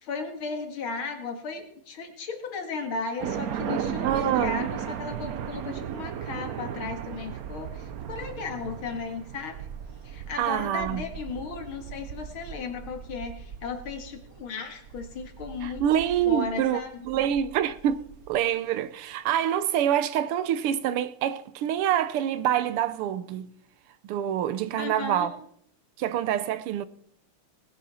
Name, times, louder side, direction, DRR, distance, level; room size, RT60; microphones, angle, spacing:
voice 1, 0.0-9.6 10.0-15.8 16.3-17.0 24.8-25.3, left 4 dB, 70° left, 2.6 m, -35 dB
sound 1, 3.2-18.4, right 8 dB, 65° right, 0.9 m, -36 dB
voice 2, 4.0-4.7 10.4-11.0 15.6-16.8 17.0-23.5 24.0-25.3 26.0-26.9, right 10 dB, 85° right, 1.7 m, -26 dB
19.0 x 10.5 x 4.2 m
omnidirectional pair, 2.4 m